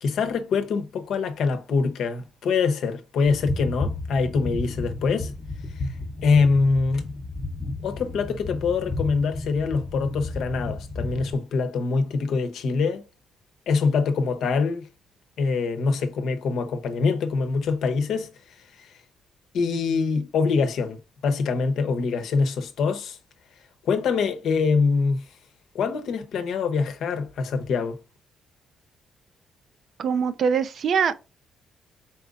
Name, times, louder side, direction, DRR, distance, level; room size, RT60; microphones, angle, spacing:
voice 1, 0.0-5.3 6.2-7.0 7.8-13.0 13.7-14.9 15.4-18.3 18.8-18.9 19.5-23.2 23.8-25.2 25.7-28.0, left 4 dB, 75° left, 0.8 m, -24 dB
sound 1, 3.3-11.3, left 2 dB, 35° left, 0.8 m, -32 dB
voice 2, 30.0-31.1, right 6 dB, 60° right, 0.5 m, -23 dB
4.3 x 3.9 x 2.4 m
cardioid pair, 90°, 0 cm